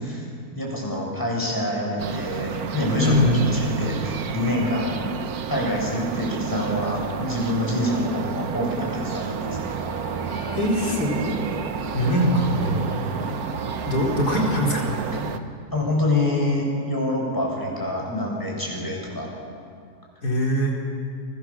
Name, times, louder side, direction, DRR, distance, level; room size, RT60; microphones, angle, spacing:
voice 1, 0.6-5.0 5.5-9.7 15.7-19.3, left 1 dB, 10° left, -3 dB, 7.4 m, -26 dB
sound 1, 2.0-15.4, right 7 dB, 70° right, 1.6 m, -31 dB
voice 2, 3.0-3.4 10.6-11.4 11.9-12.9 13.9-14.9 20.2-20.7, equal, 85° left, -2 dB, 4.6 m, -22 dB
sound 2, 9.4-16.0, equal, 30° left, 2.9 m, -37 dB
29.0 x 23.5 x 7.4 m, 2.4 s
omnidirectional pair, 1.6 m